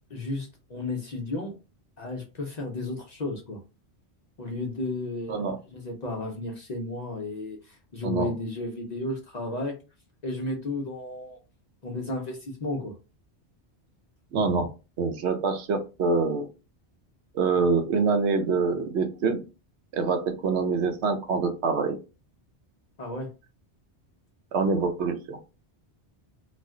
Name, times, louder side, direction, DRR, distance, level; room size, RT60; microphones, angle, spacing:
voice 1, 0.1-1.5 2.0-3.6 4.4-5.4 5.7-9.7 10.2-11.4 11.8-12.9 23.0-23.3, left 2 dB, 50° left, 1 dB, 0.5 m, -33 dB
voice 2, 14.3-14.7 15.0-16.5 17.3-19.4 19.9-22.0 24.5-25.4, right 4 dB, 75° right, 6 dB, 0.8 m, -25 dB
2.4 x 2.1 x 3.5 m, 0.31 s
omnidirectional pair, 1.1 m